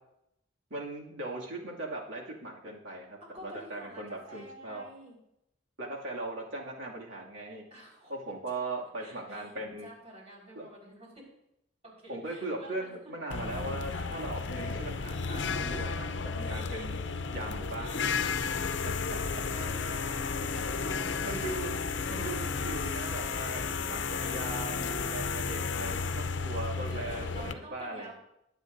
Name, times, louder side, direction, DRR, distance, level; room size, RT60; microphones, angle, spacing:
voice 1, 0.7-4.8 5.8-7.6 8.1-9.9 10.5-10.7 12.1-17.0 17.3-18.1 18.8-19.2 21.2-21.8 22.1-23.6 23.9-28.1, right 2 dB, 85° right, -2 dB, 2.3 m, -39 dB
voice 2, 3.2-5.2 7.7-8.1 9.0-9.5 9.8-11.3 11.8-13.1 13.9-14.3 19.3-21.1 26.8-28.1, right 1 dB, 35° right, -4 dB, 4.4 m, -49 dB
sound 1, 13.3-27.5, left 5 dB, 70° left, 0.6 m, -33 dB
22.0 x 8.2 x 2.6 m, 0.83 s
head